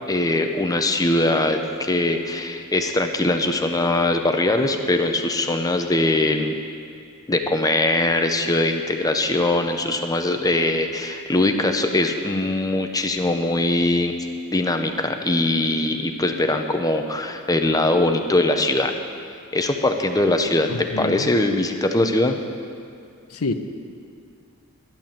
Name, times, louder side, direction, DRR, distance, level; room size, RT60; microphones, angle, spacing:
voice 1, 0.1-6.5 7.3-14.1 14.5-19.0 19.5-22.4, left 2 dB, 15° left, 6 dB, 0.7 m, -21 dB
voice 2, 20.7-21.3 23.3-23.5, left 3 dB, 75° left, 8 dB, 0.8 m, -27 dB
12.0 x 10.5 x 7.4 m, 2.3 s
head